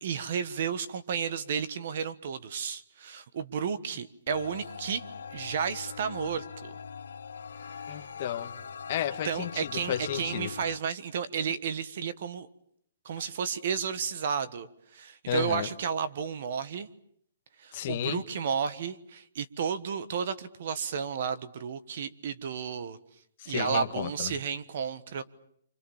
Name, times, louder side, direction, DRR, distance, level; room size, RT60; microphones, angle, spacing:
voice 1, 0.0-5.0 5.3-6.8 9.2-12.5 13.0-14.7 14.9-16.9 17.6-23.0 23.5-25.2, right 7 dB, 45° right, 14 dB, 1.4 m, -32 dB
sound 1, 4.3-10.8, left 6 dB, 80° left, 1.5 m, -42 dB
voice 2, 7.9-8.5 8.9-10.5 15.3-15.7 17.7-18.2 23.4-24.3, left 11 dB, 30° left, 5 dB, 1.5 m, -33 dB
30.0 x 25.5 x 7.2 m, 0.66 s
hypercardioid pair, 175°, 0 cm